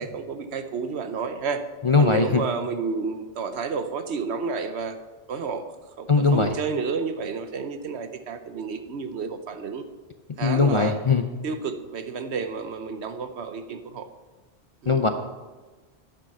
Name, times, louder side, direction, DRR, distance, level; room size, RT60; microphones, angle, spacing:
voice 1, 0.0-1.6 2.0-4.9 5.3-5.6 6.0-9.8 10.4-11.0 11.4-14.1 14.8-15.0, right 5 dB, 80° right, 9 dB, 1.1 m, -30 dB
voice 2, 1.8-2.4 6.1-6.5 10.4-11.2 14.9-15.1, left 4 dB, 40° left, 7 dB, 0.5 m, -20 dB
10.0 x 7.6 x 5.6 m, 1.3 s
omnidirectional pair, 1.1 m